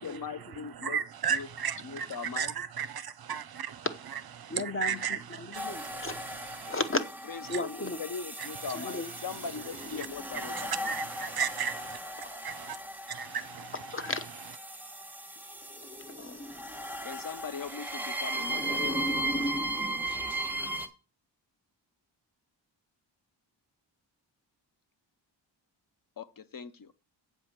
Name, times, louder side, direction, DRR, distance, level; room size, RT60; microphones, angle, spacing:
voice 1, 0.0-1.0 1.3-1.5 1.8-2.5 7.3-10.9 17.0-19.1 26.2-27.0, left 5 dB, 50° left, 0.7 m, -40 dB
voice 2, 0.7-3.9 4.4-6.7 7.5-7.6 8.4-8.7 10.0-10.1 10.3-12.0 12.4-12.8 13.1-13.7, right 7 dB, 55° right, 0.6 m, -35 dB
voice 3, 4.5-6.1 6.7-7.0 7.5-8.0 8.7-9.1 13.7-14.2 16.1-16.5 19.4-19.5, left 2 dB, 30° left, 0.9 m, -35 dB
sound 1, 5.5-20.9, right 1 dB, 5° right, 1.2 m, -36 dB
8.1 x 4.9 x 7.3 m
wide cardioid pair, 145°, 45 cm